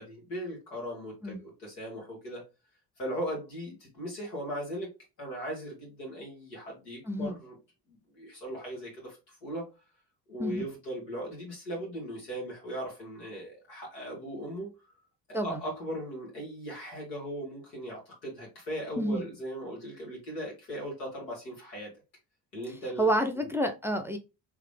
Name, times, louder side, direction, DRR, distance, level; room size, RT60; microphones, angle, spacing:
voice 1, 0.0-2.4 3.0-4.9 5.2-7.6 7.9-9.7 10.3-14.7 15.4-21.9 22.5-23.1 23.4-23.5, equal, 85° left, -2 dB, 2.0 m, -38 dB
voice 2, 7.0-7.4 10.4-10.7 15.3-15.6 19.0-19.3 23.0-24.2, right 1 dB, 5° right, 6 dB, 0.6 m, -29 dB
3.8 x 2.9 x 3.2 m, 0.27 s
figure-of-eight pair, 50°, 48 cm